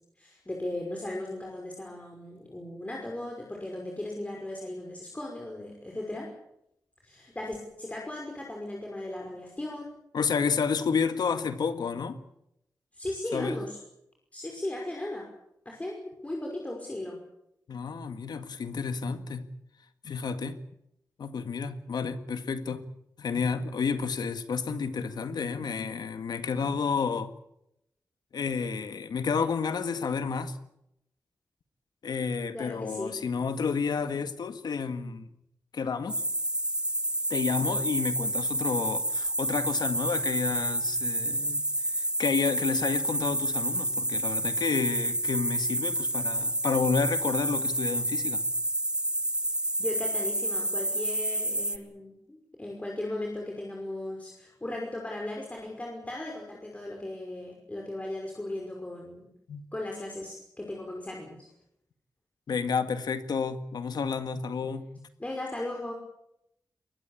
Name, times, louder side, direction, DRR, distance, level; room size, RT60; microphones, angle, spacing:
voice 1, 0.2-6.3 7.0-9.9 12.9-13.8 14.3-15.3 15.7-17.2 32.5-33.2 49.8-59.3 59.7-61.5 65.2-65.9, left 1 dB, 20° left, 0 dB, 5.6 m, -37 dB
voice 2, 10.1-12.2 13.3-13.6 17.7-19.5 20.0-20.6 21.2-22.9 23.2-27.3 28.3-30.6 32.0-35.3 35.7-36.2 37.3-48.4 59.5-59.6 62.5-65.1, left 5 dB, 90° left, 9 dB, 1.9 m, -30 dB
sound 1, 36.1-51.8, right 1 dB, 15° right, 1.5 m, -29 dB
22.5 x 19.5 x 8.7 m, 0.81 s
wide cardioid pair, 80°, 7 cm